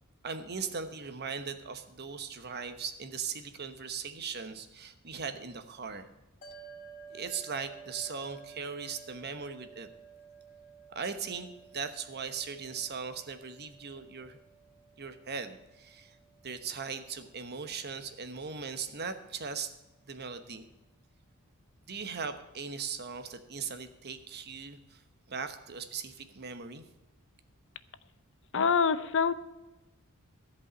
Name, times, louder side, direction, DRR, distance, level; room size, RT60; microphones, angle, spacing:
voice 1, 0.2-6.1 7.1-9.9 10.9-14.4 15.0-16.2 16.4-19.7 20.1-20.6 21.9-25.0 25.3-26.8, right 5 dB, 50° right, 9 dB, 1.0 m, -39 dB
sound 1, 6.4-18.9, right 6 dB, 35° left, 2.9 m, -54 dB
voice 2, 28.5-29.3, left 6 dB, 60° left, 14 dB, 0.6 m, -25 dB
14.0 x 5.4 x 8.6 m, 1.0 s
head